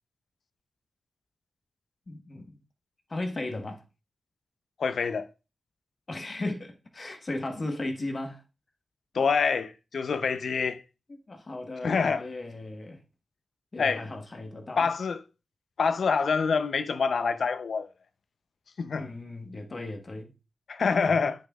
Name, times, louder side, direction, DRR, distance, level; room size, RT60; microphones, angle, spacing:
voice 1, 2.1-2.6 3.1-3.8 6.1-8.4 11.3-13.0 13.7-14.9 18.9-20.3 21.0-21.3, left 2 dB, 40° left, 1.3 m, -36 dB
voice 2, 4.8-5.3 9.1-10.8 11.8-12.2 13.8-14.0 14.8-15.2 15.8-17.9 18.8-19.1 20.7-21.3, left 5 dB, 70° left, 0.7 m, -26 dB
10.5 x 6.5 x 2.4 m
wide cardioid pair, 105°, 0 cm